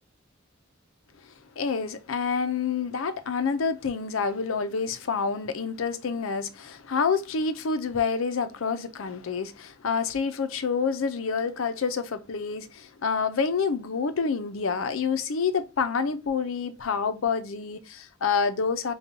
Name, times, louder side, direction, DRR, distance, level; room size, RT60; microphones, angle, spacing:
voice 1, 1.6-18.9, left 5 dB, 80° left, 0.6 m, -28 dB
5.2 x 2.3 x 2.7 m
head